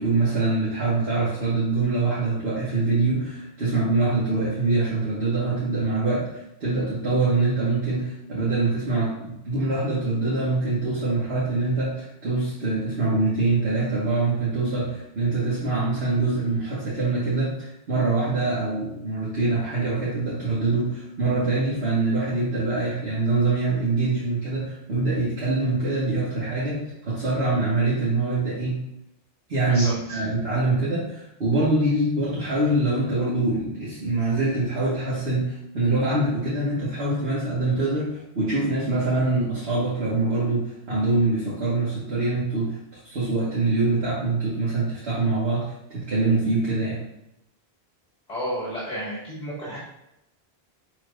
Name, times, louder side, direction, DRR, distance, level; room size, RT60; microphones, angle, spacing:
voice 1, 0.0-28.8 29.5-40.6 40.9-42.8 43.0-45.6 45.9-47.0, right 3 dB, 70° right, -8 dB, 1.9 m, -24 dB
voice 2, 29.7-30.2 48.3-49.8, equal, 40° left, -7 dB, 1.9 m, -31 dB
9.9 x 4.3 x 2.5 m, 0.83 s
omnidirectional pair, 1.1 m